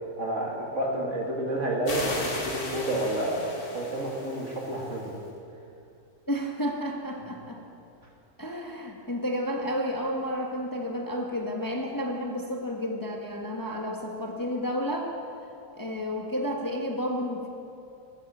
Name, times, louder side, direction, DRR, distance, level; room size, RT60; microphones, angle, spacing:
voice 1, 0.2-5.1, right 1 dB, 55° right, -2 dB, 2.9 m, -30 dB
sound 1, 1.9-5.2, left 2 dB, 80° left, 2.7 m, -36 dB
voice 2, 6.3-7.6 8.4-15.1 15.8-17.5, equal, 15° left, 0 dB, 1.3 m, -31 dB
15.0 x 14.0 x 6.1 m, 2.6 s
omnidirectional pair, 1.6 m